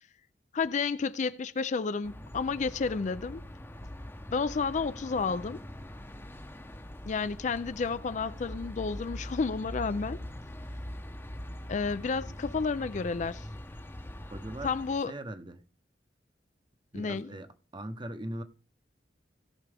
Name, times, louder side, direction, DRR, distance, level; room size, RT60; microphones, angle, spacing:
voice 1, 0.5-3.4 4.3-5.6 7.1-10.2 11.7-13.5 14.6-15.1 16.9-17.3, left 4 dB, 45° left, 0.4 m, -31 dB
sound 1, 2.0-15.0, left 1 dB, 15° left, 0.8 m, -42 dB
voice 2, 14.3-14.7 15.1-15.6 16.9-18.4, right 1 dB, 25° right, 0.9 m, -40 dB
17.5 x 6.0 x 3.4 m
head